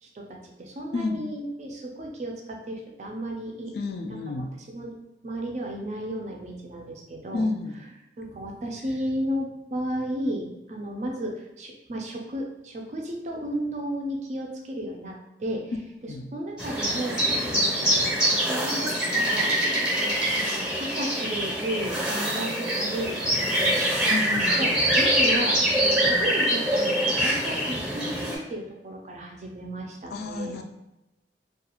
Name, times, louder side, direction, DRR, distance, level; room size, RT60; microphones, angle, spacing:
voice 1, 0.0-3.7 4.1-4.9 5.2-7.4 8.2-15.7 16.0-19.5 20.0-23.9 24.3-24.7 25.0-30.6, right 1 dB, 40° right, 1 dB, 0.4 m, -34 dB
voice 2, 0.9-1.3 3.7-4.5 7.3-7.7 16.1-16.3 24.1-24.9 30.1-30.6, left 3 dB, 60° left, 5 dB, 0.3 m, -30 dB
sound 1, 16.6-28.3, equal, 5° right, 0.7 m, -24 dB
2.3 x 2.3 x 2.9 m, 0.94 s
head